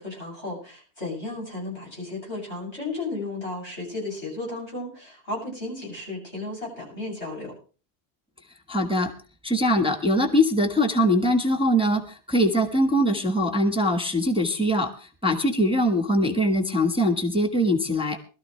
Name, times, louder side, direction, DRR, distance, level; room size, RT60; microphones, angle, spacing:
voice 1, 0.0-7.5, left 2 dB, 85° left, -2 dB, 8.1 m, -34 dB
voice 2, 8.7-9.1 9.4-18.2, equal, 5° right, 5 dB, 1.3 m, -22 dB
20.5 x 13.0 x 3.3 m, 0.36 s
omnidirectional pair, 1.1 m